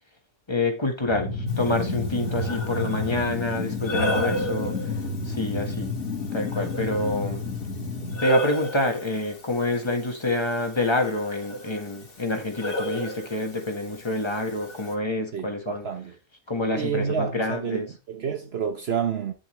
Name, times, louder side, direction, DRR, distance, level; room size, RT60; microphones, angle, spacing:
voice 1, 0.5-4.9 5.2-5.9 6.3-7.4 8.2-15.9 16.5-17.9, left 2 dB, 25° left, 1.6 m, -27 dB
sound 1, 1.1-8.2, left 3 dB, 85° left, 2.3 m, -30 dB
Breathing, 1.5-14.9, equal, 55° left, 2.0 m, -35 dB
voice 2, 15.3-16.1 16.7-19.3, right 7 dB, 65° right, 1.2 m, -29 dB
10.0 x 7.2 x 3.2 m
omnidirectional pair, 1.2 m